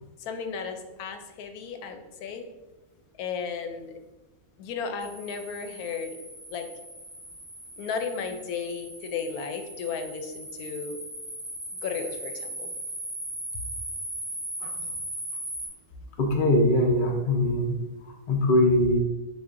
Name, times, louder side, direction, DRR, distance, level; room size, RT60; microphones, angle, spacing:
voice 1, 0.2-2.5 3.2-3.9 4.6-6.2 6.5-6.7 7.8-11.0 11.8-12.7 13.5-13.6, left 6 dB, 90° left, 6 dB, 1.1 m, -34 dB
sound 1, 5.0-15.7, right 1 dB, 30° right, 1.0 m, -38 dB
voice 2, 16.2-17.8 18.3-19.0, left 1 dB, 50° left, 2 dB, 0.6 m, -21 dB
7.0 x 2.6 x 2.5 m, 1.1 s
omnidirectional pair, 1.5 m